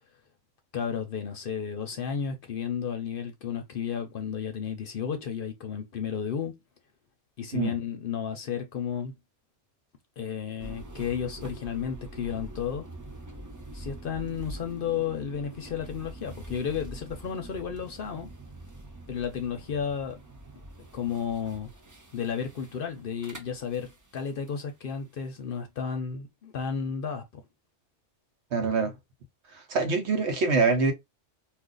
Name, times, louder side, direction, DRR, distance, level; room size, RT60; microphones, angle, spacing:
voice 1, 0.7-6.6 7.4-9.1 10.2-12.9 13.7-18.3 19.1-20.2 20.8-21.7 22.1-27.2, left 7 dB, 60° left, 0.7 m, -33 dB
sound 1, 10.6-24.6, right 1 dB, 30° right, 0.3 m, -45 dB
voice 2, 28.5-28.9 29.5-30.9, right 4 dB, 70° right, 1.1 m, -25 dB
2.4 x 2.4 x 3.7 m
omnidirectional pair, 1.2 m